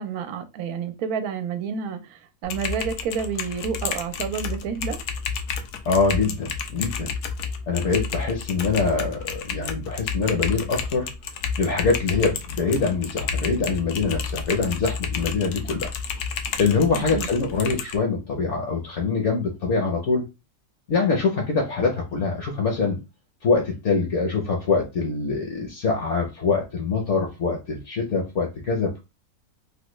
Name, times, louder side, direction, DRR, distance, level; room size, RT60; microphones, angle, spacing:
voice 1, 0.0-5.0 16.9-17.3, right 6 dB, 75° right, 1.0 m, -30 dB
Typing, 2.4-18.0, left 6 dB, 90° left, 1.1 m, -31 dB
voice 2, 5.8-7.1 7.7-11.1 11.6-15.9 16.6-20.2 20.9-23.0 23.4-29.0, left 4 dB, 60° left, 0.9 m, -24 dB
3.3 x 2.2 x 3.0 m
omnidirectional pair, 1.6 m